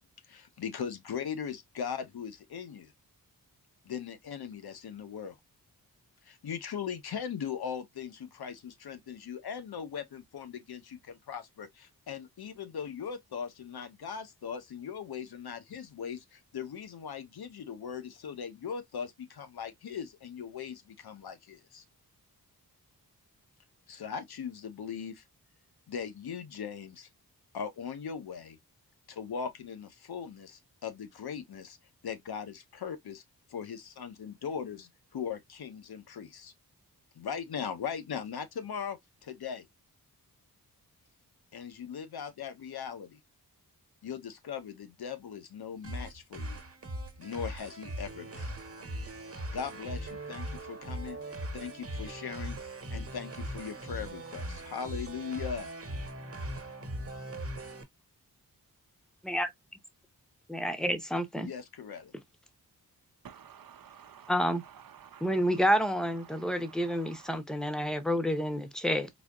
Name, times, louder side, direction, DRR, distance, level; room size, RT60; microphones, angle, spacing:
voice 1, 0.3-2.9 3.8-5.4 6.2-21.8 23.9-25.2 25.9-27.1 27.5-28.6 29.1-31.8 32.0-33.2 33.5-34.9 35.1-36.5 37.1-39.7 41.5-43.2 44.0-46.6 47.2-48.5 49.5-51.2 51.5-52.6 52.9-55.7 61.4-62.1, left 7 dB, 80° left, 0.9 m, -39 dB
sound 1, 45.8-57.8, right 1 dB, 40° right, 1.2 m, -40 dB
voice 2, 60.5-61.5 64.3-64.6 65.2-69.1, equal, ahead, 0.7 m, -29 dB
voice 3, 63.2-65.6 66.2-67.4, right 8 dB, 65° right, 0.8 m, -53 dB
4.1 x 2.8 x 2.4 m
wide cardioid pair, 100°, 37 cm